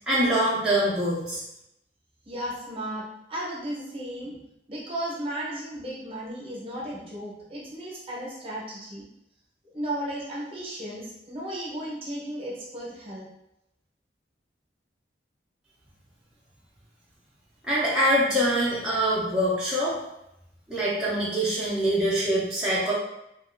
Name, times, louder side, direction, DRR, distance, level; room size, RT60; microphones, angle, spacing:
voice 1, 0.1-1.4 17.6-20.0 20.7-22.9, right 1 dB, 5° right, -9 dB, 0.6 m, -24 dB
voice 2, 2.2-4.4 4.7-9.0 9.7-13.3, right 1 dB, 35° right, -5 dB, 0.9 m, -35 dB
2.9 x 2.5 x 2.5 m, 0.83 s
head